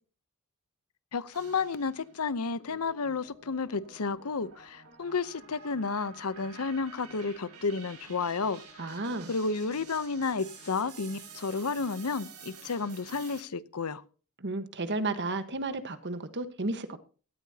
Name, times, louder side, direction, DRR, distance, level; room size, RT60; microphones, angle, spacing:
voice 1, 1.1-8.9 9.3-14.0, left 4 dB, 90° left, 0.8 m, -32 dB
sound 1, 1.3-2.2 2.7-13.4, right 5 dB, 85° right, 6.2 m, -50 dB
voice 2, 8.8-9.3 14.4-17.0, right 2 dB, 55° right, 1.4 m, -33 dB
17.5 x 13.0 x 2.8 m
head